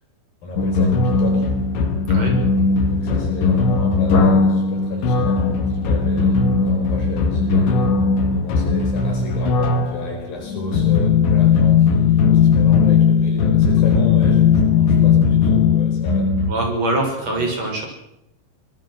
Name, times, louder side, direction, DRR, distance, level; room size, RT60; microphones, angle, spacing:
voice 1, 0.4-1.4 2.9-7.9 8.3-16.4 17.4-17.5, left 2 dB, 50° left, 2 dB, 6.2 m, -32 dB
sound 1, 0.6-16.5, left 5 dB, 75° left, 4.5 m, -17 dB
voice 2, 16.5-17.9, right 2 dB, 35° right, 2 dB, 7.0 m, -23 dB
24.5 x 20.5 x 6.4 m, 0.82 s
omnidirectional pair, 5.2 m